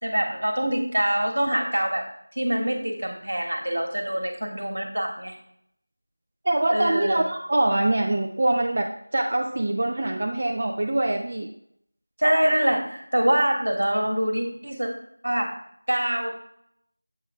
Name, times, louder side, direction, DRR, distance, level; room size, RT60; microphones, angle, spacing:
voice 1, 0.0-2.1 2.4-5.3 6.7-7.2 12.2-14.9 15.2-15.5 15.9-16.3, right 1 dB, 65° right, 2 dB, 1.4 m, -24 dB
voice 2, 6.5-11.5, right 1 dB, 35° right, 1 dB, 0.4 m, -24 dB
7.3 x 3.1 x 4.6 m, 0.70 s
figure-of-eight pair, 170°, 0 cm